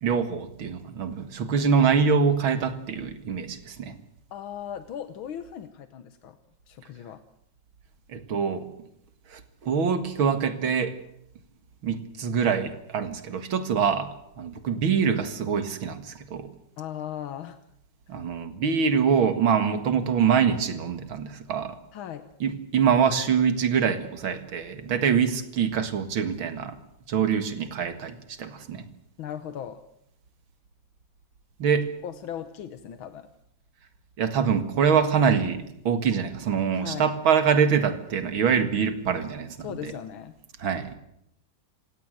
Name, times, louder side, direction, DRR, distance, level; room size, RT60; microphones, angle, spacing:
voice 1, 0.0-4.0 8.1-8.7 9.3-11.0 11.8-14.1 14.4-16.5 18.1-21.8 22.4-26.8 27.1-28.8 31.6-31.9 34.2-39.9 40.6-41.0, right 6 dB, 90° right, 10 dB, 2.6 m, -24 dB
voice 2, 4.3-6.4 6.7-7.2 16.8-17.6 21.9-22.2 29.2-29.8 32.0-33.3 36.7-37.1 39.6-40.3, left 9 dB, 85° left, 10 dB, 1.9 m, -37 dB
27.0 x 17.0 x 7.9 m, 0.77 s
omnidirectional pair, 2.2 m